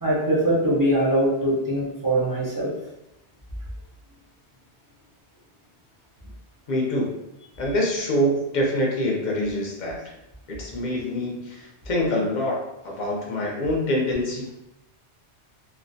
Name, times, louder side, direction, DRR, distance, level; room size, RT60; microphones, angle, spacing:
voice 1, 0.0-2.7, right 1 dB, 25° right, -7 dB, 0.4 m, -22 dB
voice 2, 6.7-7.1 7.6-10.0 10.5-12.6 12.8-14.5, left 1 dB, 50° left, -2 dB, 0.6 m, -25 dB
2.4 x 2.0 x 2.6 m, 0.89 s
omnidirectional pair, 1.1 m